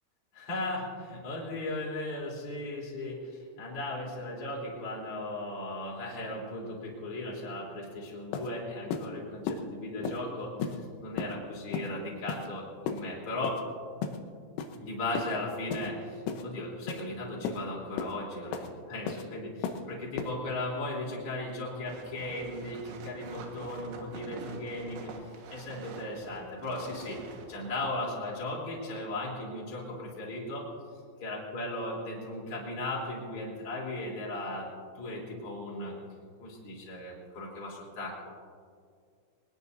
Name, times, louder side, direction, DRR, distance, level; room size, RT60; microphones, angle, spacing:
voice 1, 0.3-13.6 14.7-19.5 19.9-30.6 31.2-34.7 35.0-35.9 36.4-38.3, left 1 dB, 30° left, -4 dB, 3.9 m, -37 dB
sound 1, 7.8-7.9 8.3-8.5 8.9-9.1 9.5-9.6 10.0-10.2 10.6-10.8 11.2-11.3 11.7-11.9 12.3-12.5 12.9-13.0 13.4-13.6 14.0-14.2 14.6-14.8 15.2-15.3 15.7-15.9 16.3-16.4 16.9-17.0 17.5-17.6 18.0-18.1 18.5-18.7 19.1-19.2 19.6-19.8 20.2-20.3, left 6 dB, 80° left, 3.5 m, -34 dB
sound 2, 21.9-27.9, right 4 dB, 75° right, 4.0 m, -46 dB
23.5 x 20.0 x 2.7 m, 2.1 s
omnidirectional pair, 6.0 m